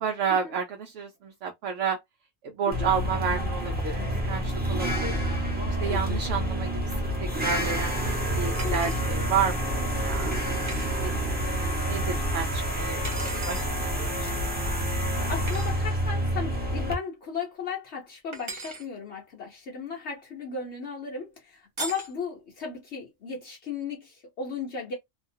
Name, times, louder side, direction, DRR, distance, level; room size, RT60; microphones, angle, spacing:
voice 1, 0.0-2.0 2.4-4.0 4.2-5.2 5.8-7.9 8.3-10.8 11.0-11.4 11.8-13.6 14.0-14.4, right 7 dB, 70° right, 0.9 m, -31 dB
sound 1, 2.7-16.9, equal, 10° right, 0.9 m, -28 dB
voice 2, 5.9-6.2 8.6-9.0 15.0-24.9, left 5 dB, 60° left, 1.0 m, -36 dB
sound 2, 8.5-9.0 10.7-10.9 13.0-13.7 15.5-15.7 18.3-18.8 21.8-22.1, right 3 dB, 45° right, 0.4 m, -37 dB
2.7 x 2.2 x 2.6 m
omnidirectional pair, 1.4 m